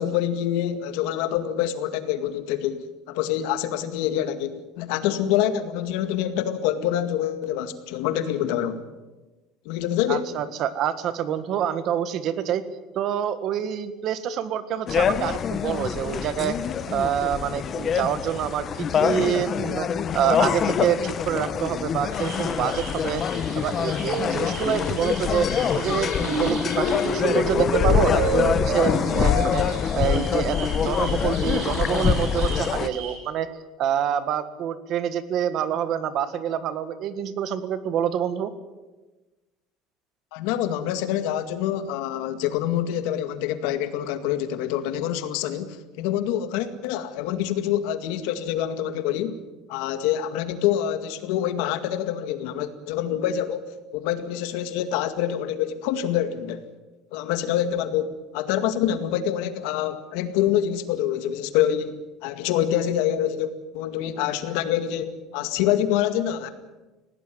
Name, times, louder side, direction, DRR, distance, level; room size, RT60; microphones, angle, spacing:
voice 1, 0.0-8.8 9.7-10.3 40.3-49.4 49.7-56.6 57.1-58.1 58.3-66.5, left 11 dB, 80° left, 10 dB, 2.0 m, -26 dB
voice 2, 10.1-12.6 12.9-16.6 16.9-19.9 20.1-23.2 23.5-29.6 29.9-30.6 30.8-33.5 33.8-38.5, right 9 dB, 45° right, 13 dB, 1.6 m, -27 dB
sound 1, 14.9-32.9, left 8 dB, 30° left, 0.9 m, -25 dB
sound 2, 22.1-33.1, right 3 dB, 70° right, 7.4 m, -31 dB
20.5 x 17.5 x 9.4 m, 1.1 s
cardioid pair, 160°, 0 cm